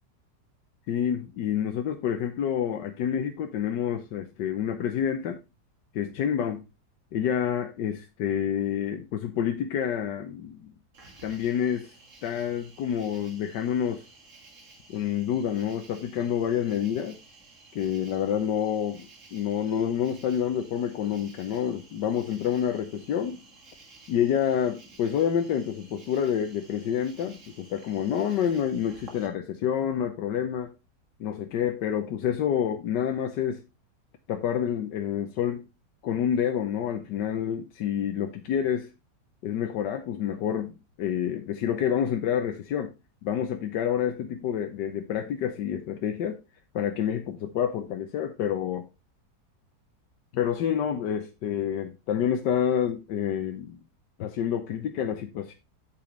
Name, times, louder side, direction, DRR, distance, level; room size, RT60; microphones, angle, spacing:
voice 1, 0.9-5.4 5.9-6.7 7.1-10.7 11.2-11.9 12.2-14.0 14.9-17.2 17.7-23.4 24.1-30.7 31.2-33.6 34.3-35.7 36.0-38.9 39.4-42.9 43.2-46.4 46.7-48.9 50.3-53.8 54.2-55.5, left 9 dB, 85° left, 1.5 m, -28 dB
Cricket, 10.9-29.3, right 3 dB, 45° right, 2.2 m, -53 dB
8.7 x 7.6 x 3.1 m
omnidirectional pair, 1.8 m